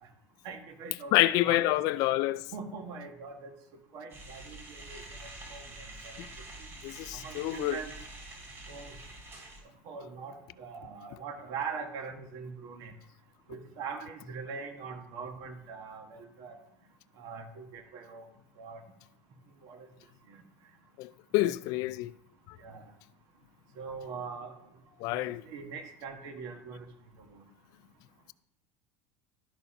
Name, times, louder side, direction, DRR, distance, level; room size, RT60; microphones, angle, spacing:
voice 1, 0.4-1.8 2.5-3.5 3.9-5.6 6.0-6.1 7.1-7.9 8.7-9.0 9.8-12.9 13.5-16.5 17.2-18.2 18.6-18.8 19.6-19.9 20.3-20.4 21.4-21.5 22.6-22.8 23.8-24.5 25.1-26.9, right 5 dB, 60° right, 1.5 m, -42 dB
voice 2, 1.1-2.4 6.8-7.8 21.0-22.1 25.0-25.4, left 16 dB, 60° left, 0.4 m, -27 dB
sound 1, 4.1-9.6, right 2 dB, 35° right, 3.2 m, -46 dB
12.0 x 4.4 x 5.0 m
supercardioid pair, 115°, 7 cm